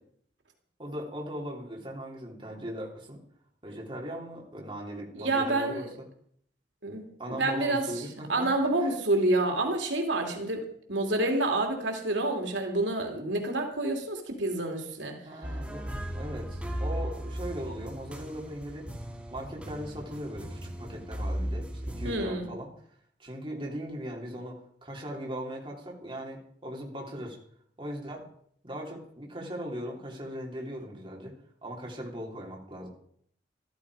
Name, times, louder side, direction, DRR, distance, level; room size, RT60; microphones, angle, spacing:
voice 1, 0.8-3.2 3.6-6.1 7.2-9.0 15.2-15.9 16.1-18.9 19.3-22.7 23.2-27.4 27.8-28.3 28.6-31.3 31.6-32.9, equal, 30° right, -1 dB, 3.3 m, -39 dB
voice 2, 5.1-5.9 6.8-7.8 8.3-10.6 10.9-15.1 22.0-22.5, right 2 dB, 85° right, 3 dB, 2.9 m, -28 dB
sound 1, 15.4-22.2, equal, 5° right, 2.3 m, -36 dB
14.5 x 13.5 x 4.9 m, 0.65 s
head